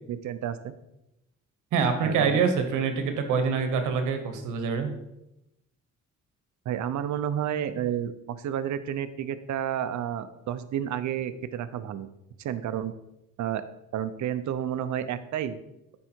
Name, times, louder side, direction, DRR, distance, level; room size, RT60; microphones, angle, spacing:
voice 1, 0.1-0.7 2.0-2.4 6.7-12.1 12.4-12.9 13.4-13.6 13.9-15.6, right 10 dB, 70° right, 13 dB, 0.7 m, -31 dB
voice 2, 1.7-4.9, right 5 dB, 85° right, 7 dB, 1.2 m, -25 dB
9.7 x 4.7 x 4.5 m, 0.88 s
cardioid pair, 90°, 30 cm